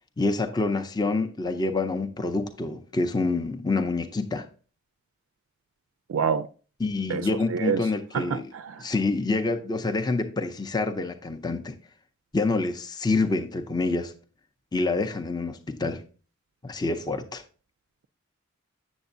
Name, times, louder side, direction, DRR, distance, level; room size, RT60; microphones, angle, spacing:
voice 1, 0.2-4.5 6.8-8.5 8.8-11.8 12.3-14.1 14.7-16.0 16.6-17.4, left 3 dB, 20° left, 0.5 m, -27 dB
voice 2, 6.1-6.5 7.1-7.9 8.1-8.8, right 6 dB, 70° right, 0.3 m, -27 dB
7.8 x 7.2 x 2.5 m
head